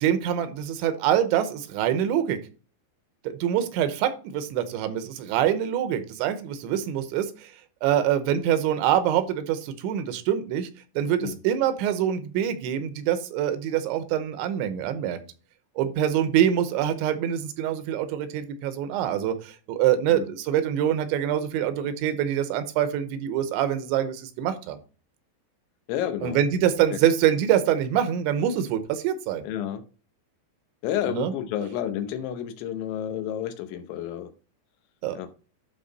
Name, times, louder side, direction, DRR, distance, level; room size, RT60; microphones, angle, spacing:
voice 1, 0.0-2.4 3.2-7.5 7.8-10.7 11.0-15.2 15.8-24.8 26.2-29.5 31.1-31.3 35.0-35.2, right 10 dB, 80° right, 3.1 m, -25 dB
voice 2, 25.9-26.4 29.4-29.8 30.8-34.3 35.1-35.3, left 10 dB, 85° left, 3.3 m, -30 dB
11.5 x 4.0 x 4.0 m
omnidirectional pair, 5.2 m